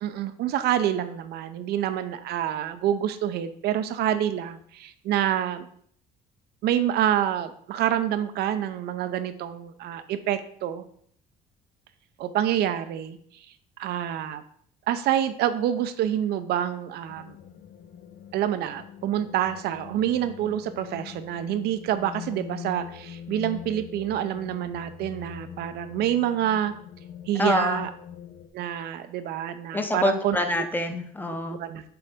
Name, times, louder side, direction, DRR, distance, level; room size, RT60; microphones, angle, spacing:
voice 1, 0.0-5.7 6.6-10.8 12.2-13.2 13.8-14.4 14.9-17.4 18.3-26.7 27.3-27.9 28.5-30.4 31.6-31.8, right 11 dB, 75° right, 11 dB, 0.6 m, -27 dB
sound 1, 17.0-28.5, left 9 dB, 65° left, 0.6 m, -43 dB
voice 2, 27.4-27.9 29.7-31.6, left 2 dB, 10° left, 6 dB, 0.7 m, -26 dB
6.8 x 3.9 x 3.6 m, 0.63 s
cardioid pair, 110°, 17 cm